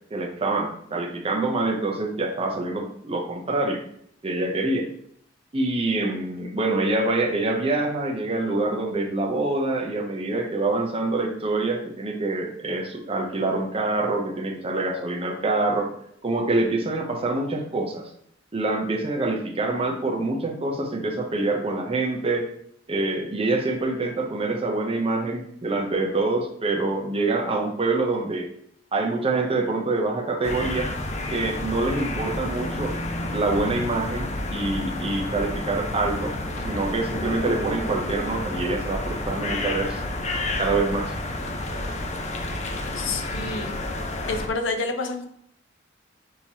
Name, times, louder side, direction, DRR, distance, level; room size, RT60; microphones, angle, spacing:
voice 1, 0.1-3.8 4.2-4.9 5.5-15.9 16.2-18.1 18.5-22.5 22.9-28.5 28.9-30.9 31.3-33.0 33.3-36.4 36.6-40.2 40.6-41.1, right 2 dB, 30° right, 2 dB, 0.6 m, -26 dB
sound 1, 30.4-44.5, left 1 dB, 35° left, 0.5 m, -30 dB
voice 2, 43.0-43.7 44.3-45.3, left 3 dB, 85° left, 5 dB, 0.6 m, -28 dB
6.3 x 2.9 x 2.8 m, 0.69 s
head